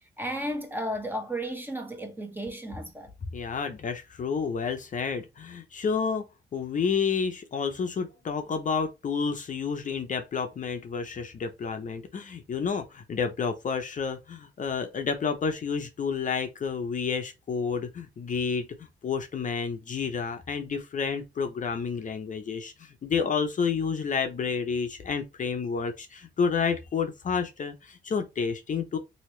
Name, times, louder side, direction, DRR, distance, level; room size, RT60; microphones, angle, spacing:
voice 1, 0.2-3.1, equal, 10° right, 0.9 m, -33 dB
voice 2, 3.3-6.2 6.5-18.7 19.0-29.0, left 5 dB, 40° left, 0.6 m, -30 dB
3.0 x 2.7 x 3.1 m
cardioid pair, 90°, 20 cm